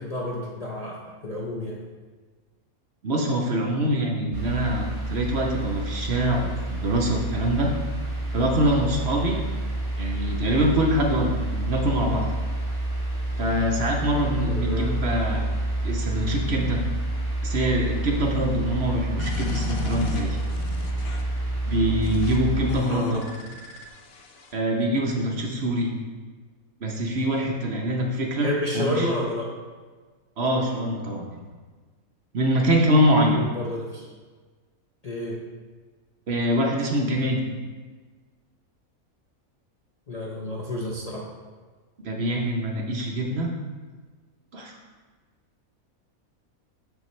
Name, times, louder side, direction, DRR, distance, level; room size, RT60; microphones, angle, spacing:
voice 1, 0.0-1.8 14.5-15.0 22.9-23.2 28.4-29.5 33.2-34.1 35.0-35.4 40.1-41.3, left 1 dB, 40° left, -4 dB, 0.5 m, -30 dB
voice 2, 3.0-7.7 8.3-9.4 10.0-12.3 13.4-15.5 15.8-16.8 17.4-20.4 21.6-23.2 24.5-25.9 26.8-29.1 30.4-31.4 32.3-33.4 36.3-37.4 42.0-43.5 44.5-44.8, right 1 dB, 55° right, 0 dB, 0.9 m, -24 dB
sound 1, 4.3-22.8, right 1 dB, 20° right, 1.7 m, -29 dB
sound 2, 19.2-21.4 22.0-22.4 22.7-24.5, left 4 dB, 70° left, 1.1 m, -36 dB
6.9 x 6.5 x 3.1 m, 1.4 s
omnidirectional pair, 1.5 m